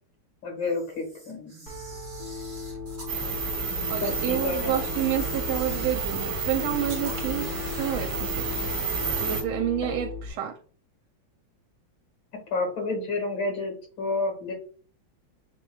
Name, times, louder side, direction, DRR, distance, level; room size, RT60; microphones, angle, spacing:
voice 1, 0.4-1.7 3.8-4.9 12.5-14.5, left 3 dB, 70° left, 1 dB, 2.4 m, -30 dB
Camera, 0.6-3.1 4.0-4.2 4.8-6.1 6.8-8.0, right 1 dB, 30° right, 1.7 m, -47 dB
Piano, 1.7-10.3, left 4 dB, 35° left, 0.9 m, -37 dB
sound 1, 3.1-9.4, right 4 dB, 60° right, 2.0 m, -31 dB
voice 2, 3.9-8.6 9.2-10.5, right 10 dB, 85° right, 2 dB, 1.5 m, -29 dB
7.0 x 3.0 x 2.3 m, 0.41 s
omnidirectional pair, 2.2 m